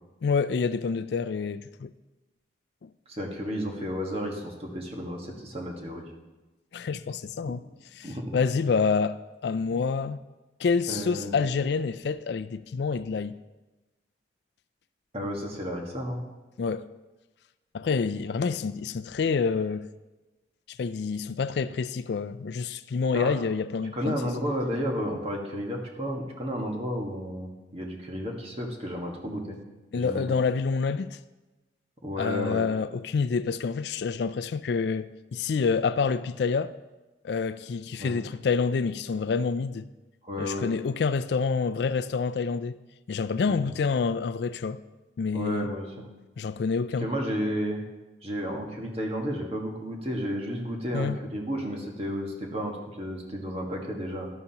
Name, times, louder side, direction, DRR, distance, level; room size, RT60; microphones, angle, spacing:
voice 1, 0.2-1.9 2.8-2.9 6.7-7.6 8.0-10.2 10.6-13.4 16.6-16.9 17.7-19.9 20.8-24.2 29.9-31.2 32.2-36.7 37.2-39.9 40.4-42.8 43.1-44.8 45.2-45.7 46.4-47.1 50.9-51.2, left 5 dB, 65° left, 0.3 m, -27 dB
voice 2, 3.1-6.0 8.0-8.4 10.9-11.4 15.1-16.2 23.1-23.3 23.9-29.6 29.9-30.4 32.0-32.6 38.0-38.2 40.2-40.7 43.5-43.7 45.3-45.9 47.0-47.8 48.2-54.3, equal, 30° right, 1.5 m, -32 dB
12.0 x 11.0 x 2.9 m
head